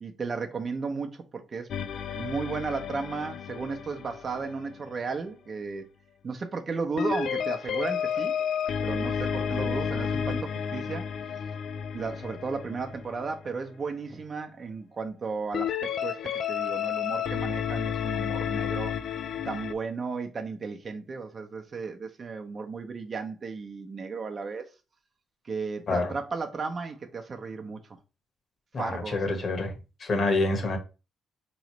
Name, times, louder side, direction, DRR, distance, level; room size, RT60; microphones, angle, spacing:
voice 1, 0.0-1.7 2.1-5.9 6.2-8.4 8.8-11.1 11.9-18.9 19.4-24.7 25.4-27.8 28.8-29.6, right 4 dB, 40° right, 0.7 m, -34 dB
sound 1, 1.7-5.0 7.0-13.5 15.5-19.7, left 7 dB, 65° left, 0.4 m, -31 dB
voice 2, 28.7-29.7 30.0-30.8, left 2 dB, 50° left, 1.3 m, -27 dB
3.8 x 3.1 x 3.1 m
cardioid pair, 90°, 0 cm